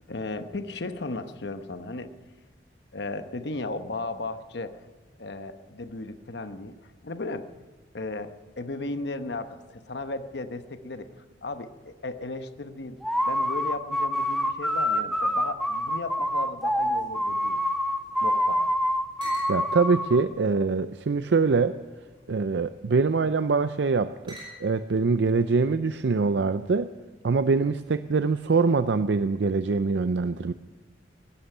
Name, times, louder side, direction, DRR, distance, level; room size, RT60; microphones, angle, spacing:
voice 1, 0.1-2.1 2.9-4.8 5.2-6.7 7.0-7.5 7.9-11.1 11.4-13.0 13.2-17.6 18.2-18.6, left 2 dB, 65° left, 9 dB, 1.0 m, -35 dB
sound 1, 13.0-20.2, equal, ahead, 0.7 m, -26 dB
sound 2, 16.7-18.3 18.6-18.7 19.2-19.6 20.3-21.2 22.0-22.4 23.3-23.7 24.3-24.9, right 1 dB, 25° right, 5.5 m, -48 dB
voice 2, 19.5-21.8 22.3-26.9 27.2-30.5, right 4 dB, 70° right, 12 dB, 0.5 m, -24 dB
17.5 x 11.5 x 6.7 m, 1.3 s
head